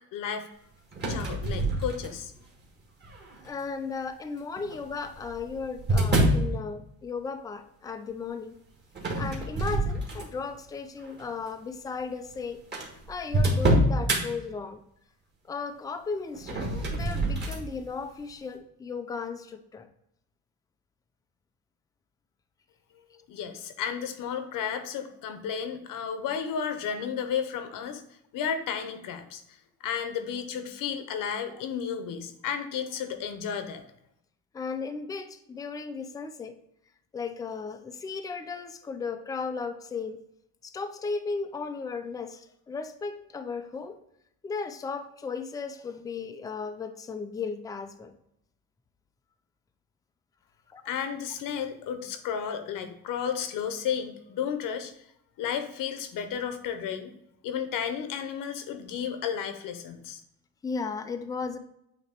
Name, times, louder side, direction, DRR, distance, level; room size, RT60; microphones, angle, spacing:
voice 1, 0.1-0.5 1.1-2.3 23.3-28.0 28.3-29.4 29.8-33.8 50.8-54.9 55.4-57.1 57.4-60.2, left 7 dB, 65° left, 8 dB, 0.9 m, -33 dB
sound 1, 0.9-2.4 3.0-3.5 4.6-6.5 9.0-10.5 11.0-11.2 12.0-12.1 12.3-12.4 12.7-14.2 16.3-17.6, right 1 dB, 30° right, 1.5 m, -26 dB
voice 2, 3.4-8.5 9.2-12.6 13.1-14.8 15.5-19.9 34.5-36.5 37.1-40.2 40.6-44.0 44.4-48.1 50.7-50.8 60.6-61.6, left 5 dB, 10° left, 8 dB, 0.3 m, -35 dB
8.3 x 2.9 x 4.4 m, 0.77 s
cardioid pair, 150°, 35 cm